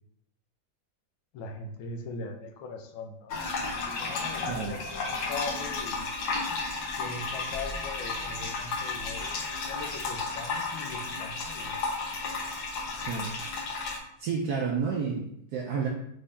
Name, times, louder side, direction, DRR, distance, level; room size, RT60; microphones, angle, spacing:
voice 1, 1.3-6.1 7.0-11.7, left 3 dB, 85° left, 4 dB, 1.4 m, -41 dB
sound 1, 3.3-14.0, left 3 dB, 65° left, 1.1 m, -33 dB
voice 2, 12.9-13.6 14.2-15.9, right 6 dB, 75° right, 0 dB, 0.9 m, -31 dB
5.3 x 2.6 x 3.4 m, 0.74 s
omnidirectional pair, 2.1 m